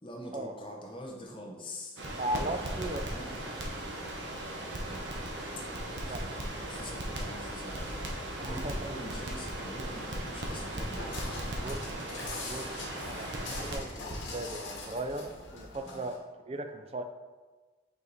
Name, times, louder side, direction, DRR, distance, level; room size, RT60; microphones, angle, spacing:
voice 1, 0.0-2.0 2.8-3.4 4.6-5.1 5.6-5.7 6.0-6.2 6.6-8.1 8.5-11.1 13.0-13.3 15.8-16.1, left 1 dB, 25° left, -2 dB, 0.8 m, -45 dB
Crackle, 2.0-13.8, right 1 dB, 75° right, 1.0 m, -37 dB
voice 2, 2.2-3.0 6.0-6.2 8.4-8.9 11.6-11.8 12.4-12.7 13.0-13.3 13.5-16.2 16.5-17.0, right 1 dB, 30° right, 6 dB, 0.4 m, -37 dB
sound 1, 6.5-15.8, equal, 70° left, 1.0 m, -51 dB
Walk footsteps, 10.4-16.2, left 3 dB, 90° left, 1.2 m, -43 dB
5.6 x 4.7 x 4.0 m, 1.3 s
head